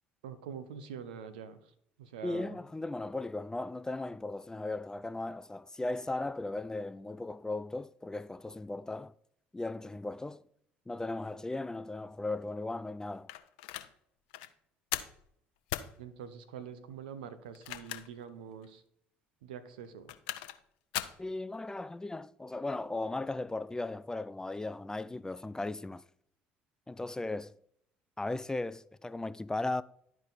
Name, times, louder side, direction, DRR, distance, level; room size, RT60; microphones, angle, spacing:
voice 1, 0.2-1.6 2.0-2.6 16.0-18.8 19.4-20.1, right 7 dB, 80° right, 0.7 m, -45 dB
voice 2, 2.2-9.1 9.5-10.4 10.9-13.3 21.2-26.0 26.9-27.5 28.2-29.8, left 2 dB, 15° left, 0.3 m, -37 dB
sound 1, 13.3-13.9 14.3-14.5 14.9-15.2 15.7-15.9 17.5-18.2 18.6-18.7 19.8-20.6 20.9-21.2, left 14 dB, 75° left, 0.5 m, -38 dB
11.5 x 4.7 x 4.0 m
hypercardioid pair, 55°, 5 cm